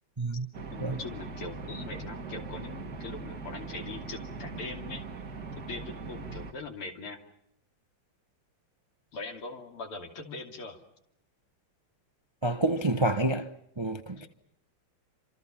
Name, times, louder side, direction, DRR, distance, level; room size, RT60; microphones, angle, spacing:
sound 1, 0.5-6.5, right 4 dB, 45° right, 2.3 m, -40 dB
voice 1, 0.7-5.0 5.6-7.2 9.1-10.8 14.2-14.3, left 3 dB, 80° left, 3.7 m, -41 dB
voice 2, 12.4-13.5 13.8-14.3, right 2 dB, 30° right, 0.5 m, -28 dB
28.0 x 27.0 x 5.8 m
omnidirectional pair, 2.4 m